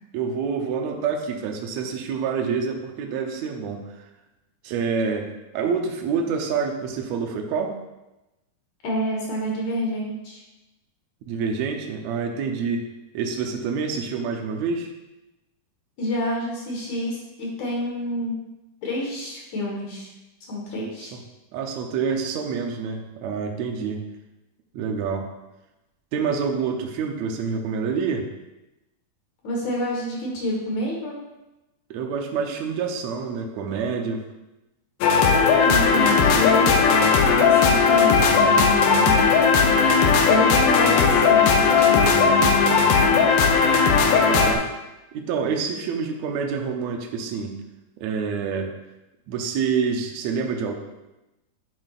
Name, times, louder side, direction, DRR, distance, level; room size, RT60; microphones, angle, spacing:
voice 1, 0.1-3.8 4.6-7.7 11.3-12.9 13.1-14.9 21.1-21.2 21.5-24.1 24.7-25.3 26.1-28.3 31.9-34.2 44.3-44.6 45.1-47.5 48.0-48.7 49.3-50.7, right 5 dB, 90° right, 3 dB, 1.5 m, -27 dB
voice 2, 8.8-10.4 16.0-18.4 18.8-20.1 20.5-21.1 29.4-31.2 35.6-43.2, left 1 dB, 60° left, -2 dB, 2.5 m, -28 dB
sound 1, 35.0-44.5, left 5 dB, 75° left, 2.1 m, -17 dB
9.7 x 7.6 x 2.5 m, 0.99 s
omnidirectional pair, 4.3 m